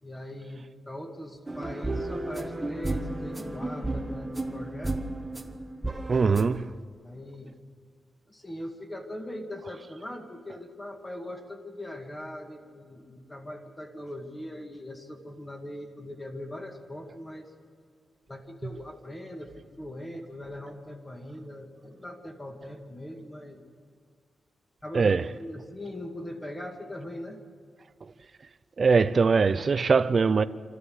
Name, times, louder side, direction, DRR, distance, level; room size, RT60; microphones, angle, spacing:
voice 1, 0.0-5.0 7.0-7.5 8.3-17.5 18.3-23.6 24.8-27.4, left 1 dB, 15° left, 2.1 m, -40 dB
sound 1, 1.5-6.5, right 2 dB, 10° right, 1.2 m, -33 dB
voice 2, 6.1-6.7 24.9-25.2 28.8-30.4, right 5 dB, 40° right, 0.6 m, -22 dB
25.0 x 15.0 x 7.9 m
wide cardioid pair, 140°, 0 cm